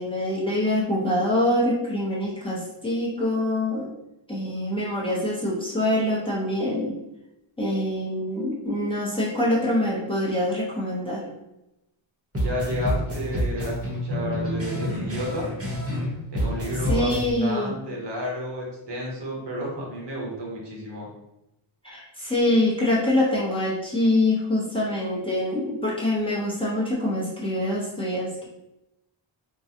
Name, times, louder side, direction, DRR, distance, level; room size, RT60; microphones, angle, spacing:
voice 1, 0.0-3.9 4.3-7.0 7.6-11.2 16.9-17.7 21.8-28.5, left 1 dB, 10° left, -7 dB, 0.8 m, -25 dB
sound 1, 12.3-16.1 16.3-17.3, equal, 30° right, 1.0 m, -28 dB
voice 2, 12.4-15.5 16.3-21.1, equal, 55° right, -3 dB, 1.1 m, -32 dB
3.7 x 2.2 x 2.8 m, 0.90 s
wide cardioid pair, 125°, 48 cm